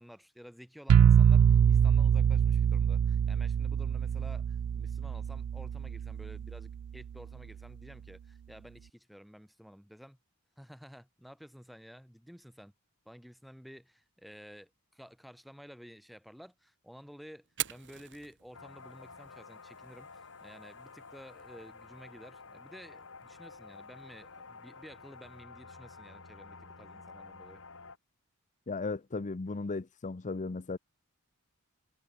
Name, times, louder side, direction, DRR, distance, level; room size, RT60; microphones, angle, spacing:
voice 1, 0.0-10.2 10.6-12.7 13.1-27.6, equal, ahead, 7.5 m, -52 dB
sound 1, 0.9-6.7, right 8 dB, 75° right, 0.3 m, -24 dB
Fire, 17.4-25.4, right 12 dB, 55° right, 5.8 m, -47 dB
sound 2, 18.5-28.0, left 4 dB, 65° left, 5.5 m, -51 dB
voice 2, 28.7-30.8, left 3 dB, 35° left, 0.6 m, -36 dB
head